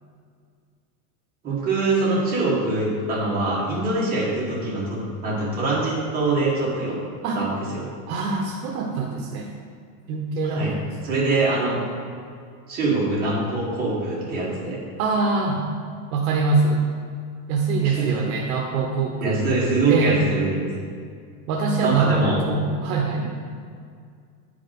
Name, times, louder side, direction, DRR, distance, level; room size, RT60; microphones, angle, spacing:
voice 1, 1.4-7.0 7.3-7.9 10.4-10.7 11.0-11.8 12.7-14.8 17.8-18.2 19.2-20.7 21.8-22.4 23.2-23.3, right 2 dB, 20° right, -6 dB, 1.6 m, -23 dB
voice 2, 8.1-9.5 10.1-10.8 11.1-11.2 15.0-15.6 16.1-16.8 17.5-19.5 19.9-20.2 21.5-22.2 22.5-23.3, right 4 dB, 60° right, 0 dB, 0.8 m, -23 dB
9.9 x 4.8 x 3.9 m, 2.2 s
supercardioid pair, 170°, 47 cm